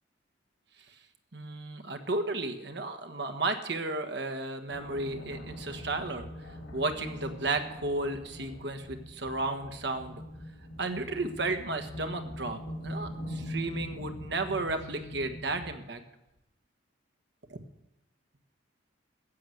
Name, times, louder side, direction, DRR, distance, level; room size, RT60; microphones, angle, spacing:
voice 1, 1.3-6.3 6.7-10.2 10.8-16.0 17.5-17.6, right 2 dB, 60° right, 7 dB, 1.4 m, -33 dB
sound 1, 4.7-15.8, equal, 75° left, 4.6 m, -42 dB
15.0 x 7.8 x 7.8 m, 0.90 s
head